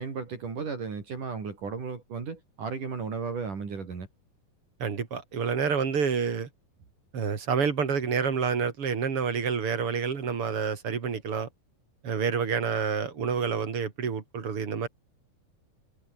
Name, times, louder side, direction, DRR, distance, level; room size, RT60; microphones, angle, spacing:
voice 1, 0.0-4.1, right 5 dB, 65° right, 6.2 m, -35 dB
voice 2, 4.8-6.5 7.1-11.5 12.0-14.9, right 6 dB, 40° right, 3.3 m, -28 dB
omnidirectional pair, 4.0 m